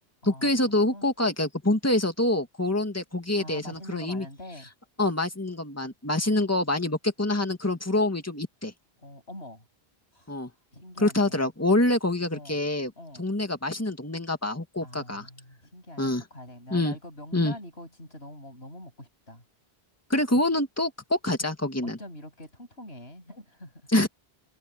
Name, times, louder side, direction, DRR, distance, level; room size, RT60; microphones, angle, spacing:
voice 1, 0.2-4.3 5.0-8.7 10.3-10.5 11.0-12.9 13.2-15.3 16.0-16.2 16.7-17.0 17.3-17.5 20.1-22.0 23.9-24.1, left 1 dB, 15° left, 2.1 m, -26 dB
voice 2, 3.4-4.7 9.0-9.6 10.1-10.4 10.7-11.5 12.3-12.6 13.0-13.2 14.8-19.4 20.3-20.4 21.8-23.8, left 1 dB, 80° left, 8.2 m, -44 dB
open air
omnidirectional pair, 1.1 m